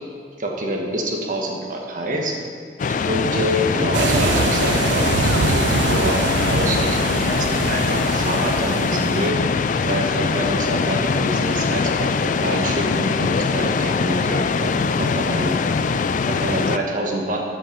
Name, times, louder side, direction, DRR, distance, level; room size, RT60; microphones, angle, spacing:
voice 1, 0.4-2.3 3.1-6.2 6.5-9.4 9.8-15.6 16.3-17.4, right 1 dB, 50° right, 0 dB, 1.4 m, -26 dB
sound 1, 2.8-16.8, left 5 dB, 45° left, 0.4 m, -22 dB
sound 2, 3.9-9.3, right 4 dB, 90° right, 0.5 m, -24 dB
13.0 x 5.6 x 5.1 m, 2.1 s
head